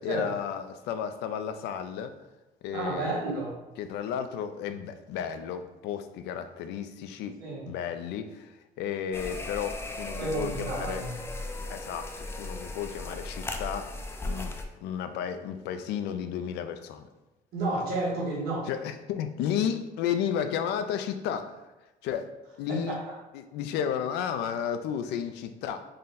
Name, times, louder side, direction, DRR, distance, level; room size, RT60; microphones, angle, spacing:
voice 1, 0.0-2.1 2.6-3.2 3.8-7.4 7.7-11.1 11.7-13.9 14.2-14.5 14.8-17.1 17.7-17.8 18.7-21.6 22.0-22.3 22.6-23.0 23.3-25.9, left 8 dB, 85° left, 9 dB, 0.4 m, -33 dB
voice 2, 2.7-3.5 7.4-7.6 10.2-11.1 17.5-18.7 22.7-23.0, right 2 dB, 70° right, -6 dB, 1.2 m, -31 dB
sound 1, 9.1-14.6, left 2 dB, 15° left, 0.4 m, -36 dB
3.8 x 2.1 x 4.0 m, 1.1 s
cardioid pair, 110°, 17 cm